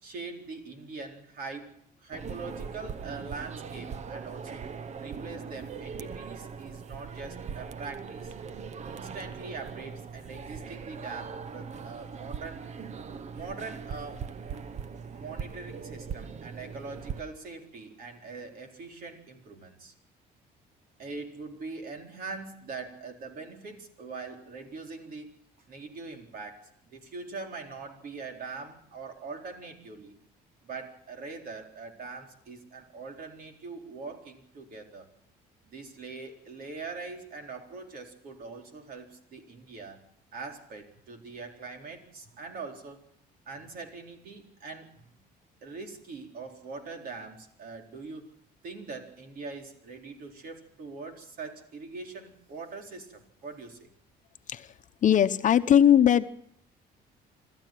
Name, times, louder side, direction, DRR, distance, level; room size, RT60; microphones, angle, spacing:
voice 1, 0.0-4.7 5.0-8.3 8.9-12.7 13.3-14.2 15.1-19.9 21.0-25.3 25.7-30.2 30.6-35.1 35.7-40.0 40.3-43.0 43.5-45.1 45.6-48.3 48.6-53.9, right 4 dB, 60° right, 3 dB, 4.0 m, -42 dB
sound 1, 2.1-17.2, right 6 dB, 40° right, 0.9 m, -40 dB
voice 2, 55.0-56.3, left 9 dB, 50° left, 10 dB, 1.0 m, -20 dB
25.5 x 14.0 x 7.6 m, 0.68 s
cardioid pair, 110°, 17 cm